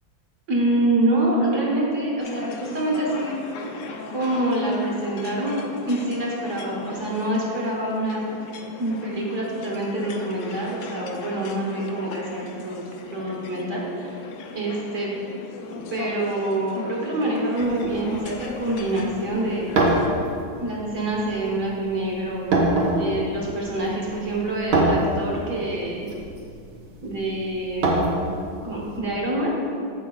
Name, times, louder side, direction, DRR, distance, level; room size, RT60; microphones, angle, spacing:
voice 1, 0.5-3.4 4.1-8.2 8.8-14.2 14.5-15.1 15.9-19.6 20.6-22.4 22.9-26.0 27.0-28.0 28.6-29.5, right 1 dB, 45° right, -3 dB, 1.4 m, -26 dB
sound 1, 2.2-20.1, left 4 dB, 75° left, 1.1 m, -38 dB
sound 2, 17.6-29.0, right 2 dB, 85° right, 1.8 m, -26 dB
14.0 x 5.0 x 2.3 m, 2.4 s
omnidirectional pair, 2.2 m